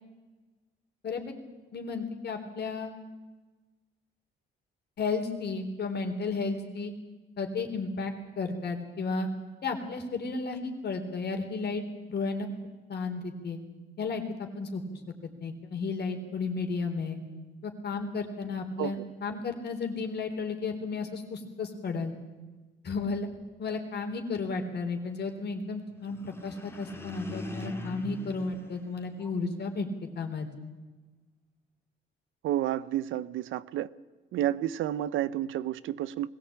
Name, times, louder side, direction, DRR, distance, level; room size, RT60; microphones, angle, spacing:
voice 1, 1.7-2.9 5.0-6.9 7.4-9.3 9.6-11.8 12.1-12.5 12.9-13.6 14.0-14.8 15.4-17.2 17.6-22.1 22.8-23.3 23.6-29.9 30.2-30.5, left 4 dB, 55° left, 3.6 m, -33 dB
sound 1, 26.0-29.6, left 2 dB, 10° left, 2.3 m, -42 dB
voice 2, 32.4-33.9 34.3-36.3, right 12 dB, 85° right, 0.7 m, -30 dB
21.0 x 17.0 x 8.7 m
cardioid pair, 90°, 20 cm